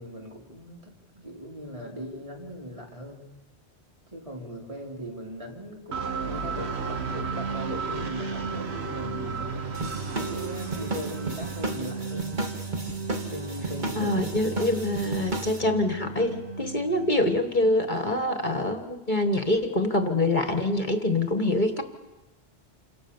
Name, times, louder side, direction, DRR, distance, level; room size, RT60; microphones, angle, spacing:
voice 1, 0.0-3.3 4.1-12.4 13.3-14.3, equal, 30° right, -1 dB, 4.4 m, -39 dB
sound 1, 5.9-17.7, right 5 dB, 75° right, 1.5 m, -34 dB
sound 2, 9.7-15.6, right 2 dB, 45° right, 2.0 m, -34 dB
voice 2, 13.9-21.8, left 1 dB, 45° left, 7 dB, 1.7 m, -25 dB
28.5 x 26.0 x 7.2 m, 1.1 s
omnidirectional pair, 1.1 m